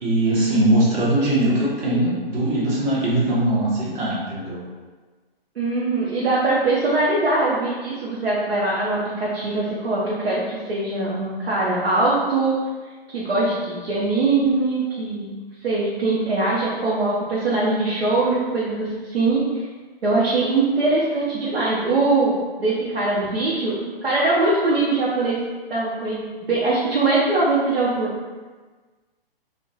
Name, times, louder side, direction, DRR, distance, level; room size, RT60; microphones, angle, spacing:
voice 1, 0.0-4.6, right 1 dB, 20° right, -5 dB, 0.7 m, -21 dB
voice 2, 5.6-12.6 13.1-15.3 15.6-19.6 20.0-23.8 24.0-25.4 25.7-28.1, right 2 dB, 90° right, -6 dB, 0.8 m, -22 dB
2.3 x 2.2 x 3.8 m, 1.4 s
hypercardioid pair, 135°, 30 cm